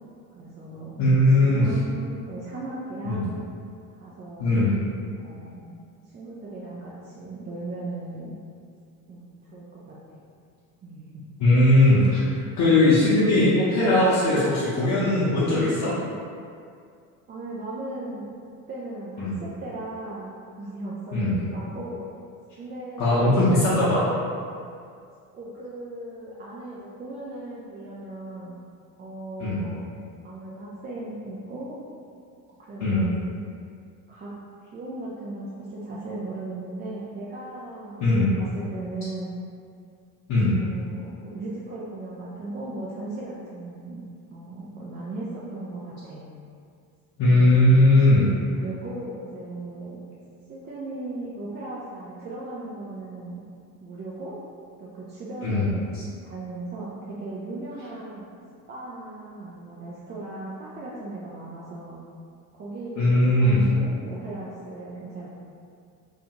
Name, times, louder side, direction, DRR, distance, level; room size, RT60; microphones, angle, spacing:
voice 1, 0.4-0.9 1.4-3.4 4.0-4.7 5.1-5.7 6.1-8.3 9.1-10.2 10.8-11.2 14.3-14.5 17.3-18.3 18.7-22.1 22.6-23.7 25.3-28.5 29.0-29.8 30.2-31.8 32.6-33.2 34.1-34.3 34.6-38.0 38.3-39.3 40.6-44.0 44.3-46.3 47.3-50.1 50.5-53.4 53.8-54.4 54.8-55.9 56.2-58.3 58.7-62.0 62.5-65.3, right 2 dB, 25° right, -7 dB, 0.4 m, -37 dB
voice 2, 1.0-1.7 3.0-3.2 4.4-4.7 11.4-12.2 12.6-15.9 19.2-19.3 21.1-21.3 23.0-24.1 29.4-29.6 32.8-33.1 38.0-38.3 40.3-40.5 47.2-48.3 55.4-55.6 55.9-56.0 63.0-63.6, left 1 dB, 45° left, -10 dB, 0.8 m, -19 dB
2.4 x 2.4 x 2.9 m, 2.3 s
hypercardioid pair, 70°, 45 cm